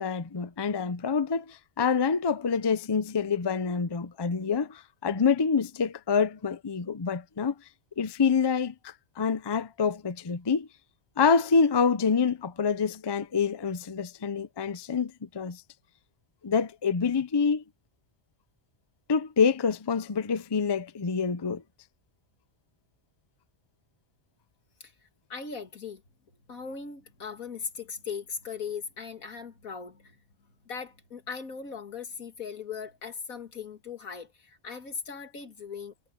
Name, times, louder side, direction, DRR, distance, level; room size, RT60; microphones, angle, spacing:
voice 1, 0.0-7.5 8.0-10.7 11.2-15.6 16.4-17.6 19.1-21.6, left 5 dB, 30° left, 0.5 m, -26 dB
voice 2, 25.3-26.0 26.5-30.2 30.7-35.9, left 6 dB, 90° left, 2.5 m, -39 dB
omnidirectional pair, 1.4 m